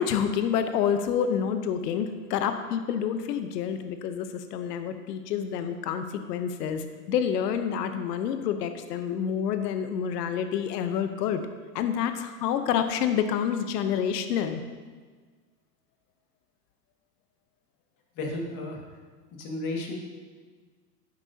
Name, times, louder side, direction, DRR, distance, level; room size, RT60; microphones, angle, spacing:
voice 1, 0.0-11.4 11.7-14.6, left 8 dB, 75° left, 8 dB, 0.9 m, -28 dB
voice 2, 18.2-18.8 19.3-20.0, left 2 dB, 40° left, 1 dB, 2.0 m, -33 dB
11.0 x 9.6 x 2.8 m, 1.5 s
supercardioid pair, 130°, 48 cm